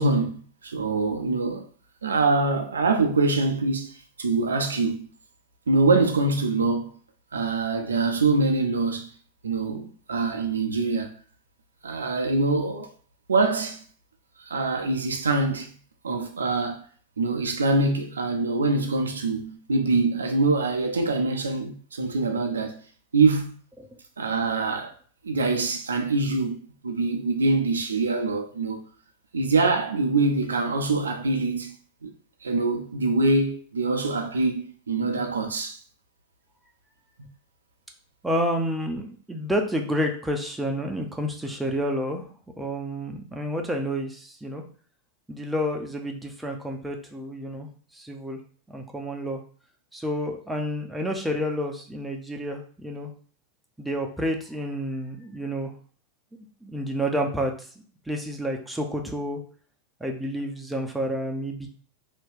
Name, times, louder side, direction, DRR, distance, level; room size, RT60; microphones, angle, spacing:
voice 1, 0.0-1.7 2.0-5.1 5.7-6.9 7.3-9.1 9.4-11.1 11.8-12.9 13.3-13.8 14.4-15.7 16.0-16.8 17.2-22.8 23.1-23.5 24.2-24.9 25.2-28.8 29.3-31.8 32.0-32.1 32.4-35.8, right 3 dB, 70° right, 0.5 m, -24 dB
voice 2, 38.2-42.3 42.5-44.6 45.3-48.4 48.7-49.4 49.9-53.1 53.8-55.7 56.3-57.7 58.1-59.4 60.0-61.7, equal, 5° right, 0.5 m, -29 dB
2.7 x 2.2 x 3.5 m
figure-of-eight pair, 90°, 0 cm